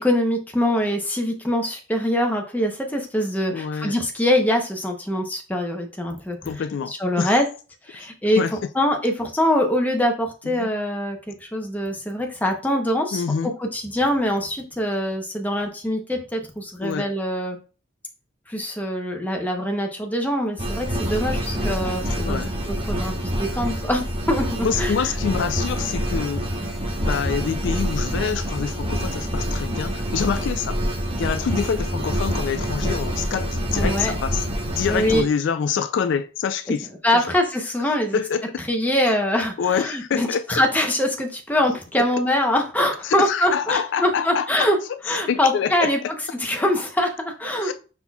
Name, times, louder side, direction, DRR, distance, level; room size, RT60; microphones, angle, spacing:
voice 1, 0.0-6.4 7.0-7.4 7.8-17.6 18.5-24.9 33.7-34.1 34.9-35.2 37.0-38.2 38.7-44.8 45.1-46.0 46.4-47.7, left 1 dB, 10° left, 0.7 m, -23 dB
voice 2, 3.5-3.9 6.4-7.3 8.4-8.5 10.4-10.7 13.1-13.5 16.8-17.1 22.1-22.5 24.6-26.4 27.1-30.8 31.2-36.9 37.1-37.2 38.1-38.6 39.6-40.6 43.0-44.7 45.3-45.9 47.6-47.7, left 6 dB, 65° left, 0.3 m, -26 dB
sound 1, 20.6-35.2, equal, 30° right, 1.0 m, -26 dB
5.6 x 4.2 x 2.3 m
head